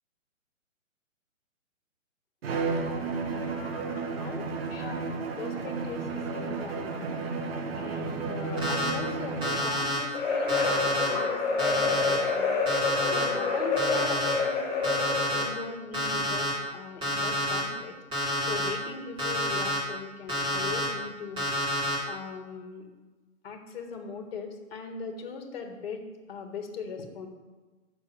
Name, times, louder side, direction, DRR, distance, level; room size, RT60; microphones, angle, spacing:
Bowed string instrument, 2.4-9.8, right 4 dB, 45° right, 1.1 m, -32 dB
voice 1, 2.6-3.1 3.5-4.4 4.7-7.1 7.7-12.5 13.0-17.9 18.5-21.5 22.0-22.9 23.4-27.3, left 5 dB, 45° left, 5 dB, 1.6 m, -40 dB
Alarm, 8.6-8.9 9.4-10.0 10.5-11.1 11.6-12.2 12.7-13.2 13.8-14.3 14.8-15.4 15.9-16.5 17.0-17.6 18.1-18.7 19.2-19.8 20.3-20.9 21.4-22.0, left 1 dB, 10° right, 2.3 m, -29 dB
sound 1, 10.1-15.6, left 4 dB, 15° left, 2.5 m, -28 dB
6.4 x 6.2 x 7.2 m, 1.2 s
hypercardioid pair, 145°, 40 cm